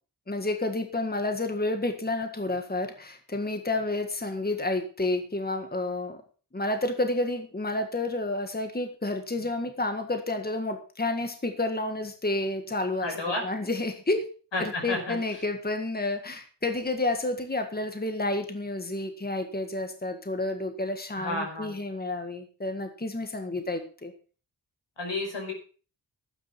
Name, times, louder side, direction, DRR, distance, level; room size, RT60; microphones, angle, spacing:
voice 1, 0.3-6.2 6.5-14.3 14.6-24.1, left 2 dB, 20° left, 6 dB, 1.7 m, -30 dB
voice 2, 13.0-13.4 14.5-15.2 21.2-21.8 25.0-25.5, left 2 dB, 85° left, 2 dB, 5.3 m, -31 dB
12.0 x 9.2 x 5.9 m, 0.39 s
wide cardioid pair, 90°, 42 cm